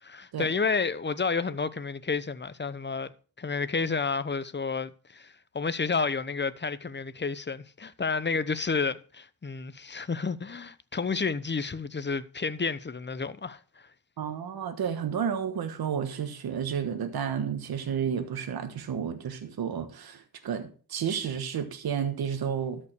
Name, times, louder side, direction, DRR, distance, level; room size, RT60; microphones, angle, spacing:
voice 1, 0.0-3.1 3.4-13.9, left 4 dB, 30° left, 1.0 m, -30 dB
voice 2, 14.2-22.8, right 7 dB, 80° right, 1.4 m, -31 dB
13.0 x 5.5 x 6.7 m
cardioid pair, 65°, 36 cm